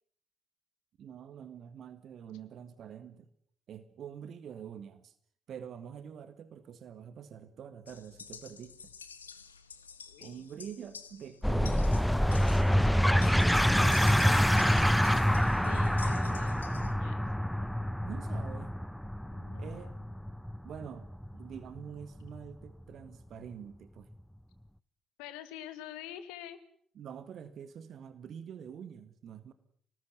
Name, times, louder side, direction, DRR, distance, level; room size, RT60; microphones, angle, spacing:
voice 1, 1.0-3.3 3.7-5.1 5.5-8.9 10.2-12.1 12.9-14.1 15.1-15.3 18.0-18.7 19.6-19.9 20.6-21.1 21.3-24.1 26.9-29.5, right 8 dB, 55° right, 12 dB, 1.7 m, -46 dB
sound 1, 7.9-16.9, left 6 dB, 85° left, 1.1 m, -50 dB
voice 2, 10.1-10.5 14.8-17.2 19.3-20.0 25.2-26.6, left 11 dB, 70° left, 12 dB, 2.1 m, -47 dB
sound 2, 11.4-22.5, equal, ahead, 0.9 m, -27 dB
27.0 x 19.5 x 8.0 m, 0.62 s
figure-of-eight pair, 45°, 0 cm